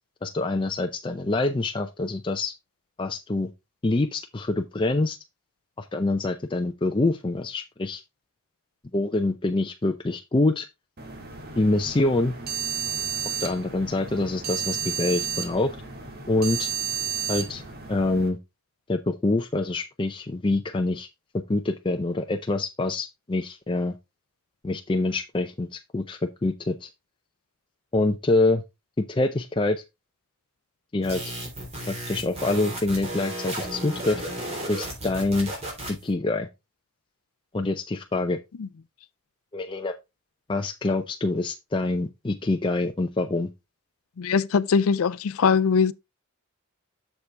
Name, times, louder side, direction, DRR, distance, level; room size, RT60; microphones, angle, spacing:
voice 1, 0.2-2.5 3.0-3.5 3.8-5.2 5.8-8.0 8.9-10.7 11.6-12.3 13.4-15.8 16.3-16.7 17.3-17.6 17.9-18.4 18.9-21.1 21.5-23.9 24.6-26.9 27.9-28.6 29.0-29.8 30.9-31.3 31.9-34.2 34.7-35.5 36.0-36.5 37.5-38.4 39.5-39.9 40.5-43.5, left 2 dB, 25° left, 0.5 m, -25 dB
sound 1, 11.0-18.3, right 7 dB, 45° right, 2.0 m, -32 dB
sound 2, 31.0-36.1, right 1 dB, 30° right, 3.8 m, -34 dB
voice 2, 44.2-45.9, left 6 dB, 75° left, 0.4 m, -21 dB
7.1 x 6.7 x 3.3 m
head